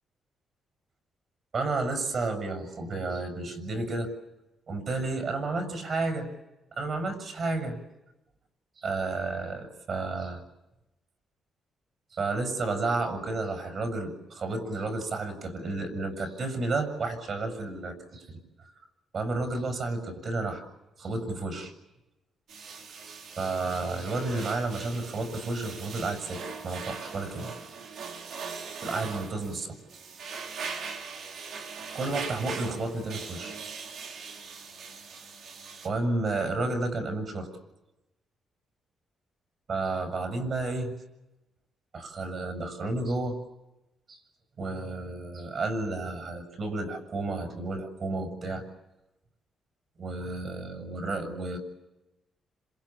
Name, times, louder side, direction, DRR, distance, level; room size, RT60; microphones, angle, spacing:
voice 1, 1.5-4.1 4.7-6.3 6.7-7.8 8.8-10.4 12.1-18.4 19.1-20.6 21.0-21.7 23.4-27.5 28.0-28.2 28.8-29.8 31.9-33.6 35.8-37.5 39.7-40.9 41.9-43.4 44.1-44.2 44.6-48.6 50.0-51.6, right 3 dB, 50° right, 6 dB, 6.8 m, -31 dB
sound 1, 22.5-35.9, right 5 dB, 70° right, 4.5 m, -40 dB
27.5 x 27.0 x 7.3 m, 0.99 s
cardioid pair, 95°, 0 cm